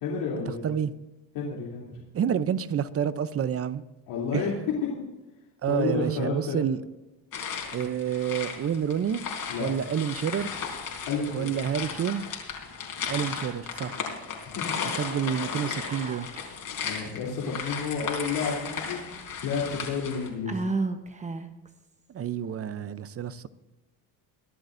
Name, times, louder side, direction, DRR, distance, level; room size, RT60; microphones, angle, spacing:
voice 1, 0.0-0.7 1.3-2.0 4.1-4.5 5.7-6.6 9.5-9.7 11.0-11.5 14.5-14.6 16.8-20.6, left 5 dB, 85° left, 3.2 m, -31 dB
voice 2, 2.1-3.8 4.3-4.5 5.6-6.8 7.7-9.2 9.6-10.5 11.3-12.2 13.1-14.0 15.0-16.3 22.1-23.5, right 8 dB, 35° right, 0.6 m, -28 dB
sound 1, 7.3-20.3, left 6 dB, 55° left, 3.8 m, -35 dB
Whispering, 15.8-16.5 16.8-16.9 18.1-18.9 19.6-19.7 20.5-21.7, right 3 dB, 15° right, 1.0 m, -33 dB
24.0 x 10.5 x 2.6 m
cardioid pair, 115°, 42 cm